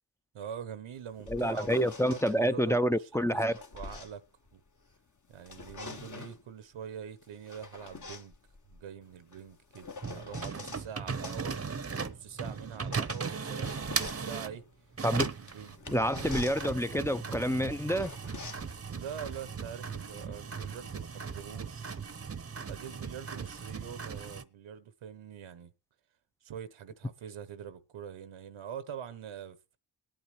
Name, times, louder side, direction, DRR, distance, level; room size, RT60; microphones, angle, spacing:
voice 1, 0.3-1.7 2.0-3.4 3.7-4.2 4.5-4.6 5.3-8.3 8.7-11.6 12.0-14.6 15.3-15.8 18.9-22.0 22.7-25.7 26.4-29.6, right 8 dB, 75° right, 1.0 m, -44 dB
sound 1, 1.0-2.4 3.2-5.0 5.3-6.5 7.2-10.9 11.2-20.3, left 3 dB, 35° left, 1.3 m, -46 dB
voice 2, 1.3-3.5 15.0-15.3 15.9-18.1, equal, 5° left, 0.6 m, -28 dB
sound 2, 10.0-14.6 14.9-24.4, right 5 dB, 30° right, 0.9 m, -38 dB
20.0 x 8.9 x 3.1 m
cardioid pair, 50°, 49 cm